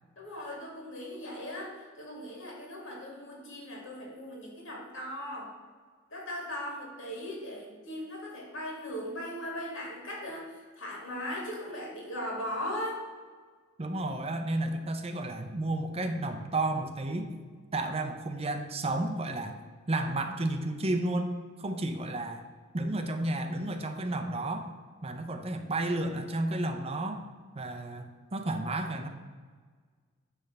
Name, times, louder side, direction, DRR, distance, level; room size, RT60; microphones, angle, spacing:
voice 1, 0.2-5.5 6.1-13.0, equal, 70° left, -2 dB, 2.8 m, -38 dB
voice 2, 13.8-17.3 17.7-19.6 19.9-21.3 21.6-22.4 22.7-24.7 25.0-27.2 27.6-29.1, right 2 dB, 30° right, 6 dB, 0.7 m, -32 dB
10.5 x 3.5 x 6.7 m, 1.5 s
head